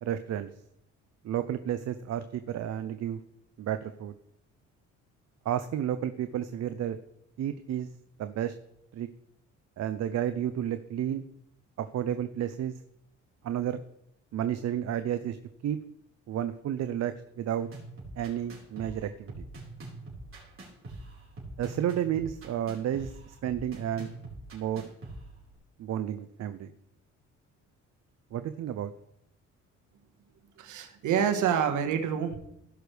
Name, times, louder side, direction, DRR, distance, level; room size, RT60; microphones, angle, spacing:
voice 1, 0.0-0.5 1.2-3.2 3.6-4.1 5.4-7.0 7.4-7.9 8.2-8.5 8.9-9.1 9.8-11.2 11.8-12.7 13.4-13.8 14.3-15.4 15.6-15.8 16.3-17.7 18.2-19.5 21.6-24.1 24.5-24.9 25.8-26.7 28.3-28.9, right 10 dB, 60° right, 11 dB, 0.6 m, -31 dB
sound 1, 17.6-25.6, right 2 dB, 45° right, 4.6 m, -44 dB
voice 2, 30.6-32.4, right 8 dB, 80° right, 6 dB, 1.5 m, -27 dB
16.5 x 6.2 x 3.4 m, 0.79 s
cardioid pair, 90°, 30 cm